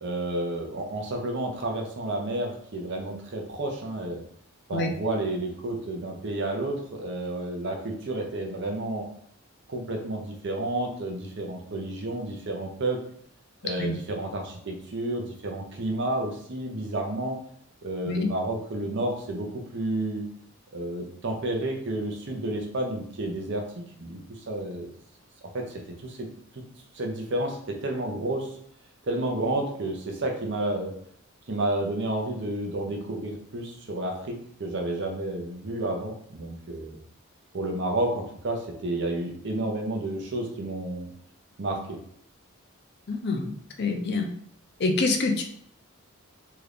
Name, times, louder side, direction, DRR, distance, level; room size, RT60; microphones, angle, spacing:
voice 1, 0.0-4.2 4.7-9.1 9.7-13.0 13.6-17.4 17.8-20.3 20.7-23.6 24.0-24.2 24.5-24.9 25.5-26.3 26.5-26.6 26.9-28.5 29.1-30.9 31.5-37.0 37.5-41.1 41.6-42.0, right 1 dB, 55° right, 1 dB, 0.7 m, -31 dB
voice 2, 43.1-43.5 43.8-44.3 44.8-45.4, left 3 dB, 50° left, 3 dB, 0.4 m, -26 dB
2.8 x 2.4 x 3.3 m, 0.64 s
head